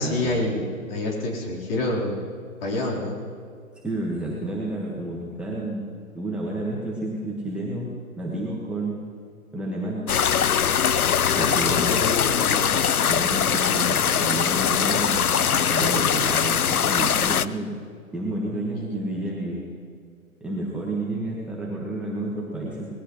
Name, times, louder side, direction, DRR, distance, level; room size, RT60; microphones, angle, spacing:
voice 1, 0.0-2.2 2.6-3.2 11.3-12.9 15.8-16.0, left 2 dB, 40° left, -3 dB, 4.2 m, -28 dB
voice 2, 3.8-9.0 9.5-10.0 11.4-12.0 13.0-17.7 18.1-19.6 20.4-22.9, right 1 dB, ahead, -6 dB, 1.6 m, -30 dB
sound 1, 10.1-17.5, left 8 dB, 90° left, 0.6 m, -22 dB
20.5 x 16.5 x 3.2 m, 2.2 s
figure-of-eight pair, 130°, 42 cm